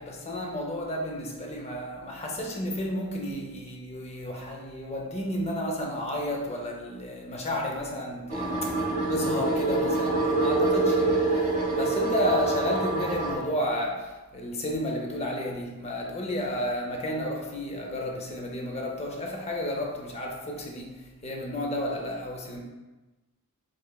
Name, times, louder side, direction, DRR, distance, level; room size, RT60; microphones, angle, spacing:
voice 1, 0.0-8.5 9.1-22.6, left 1 dB, 30° left, 0.6 m, -32 dB
sound 1, 8.3-13.3, right 2 dB, 30° right, 0.9 m, -26 dB
4.4 x 3.2 x 2.3 m
head